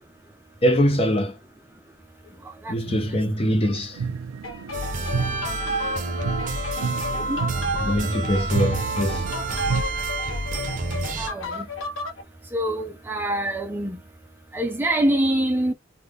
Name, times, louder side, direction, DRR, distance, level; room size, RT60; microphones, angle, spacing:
voice 1, 0.6-1.4 2.7-4.0 7.8-9.3, equal, 30° left, 0.8 m, -23 dB
sound 1, 2.9-3.3 3.6-9.8, right 5 dB, 90° right, 0.4 m, -31 dB
sound 2, 4.4-12.2, left 1 dB, 70° left, 0.8 m, -33 dB
sound 3, 4.7-11.3, right 2 dB, 40° right, 0.9 m, -29 dB
voice 2, 11.2-11.7 12.5-14.0 14.5-15.7, right 1 dB, 10° right, 0.4 m, -25 dB
3.6 x 2.2 x 3.4 m
head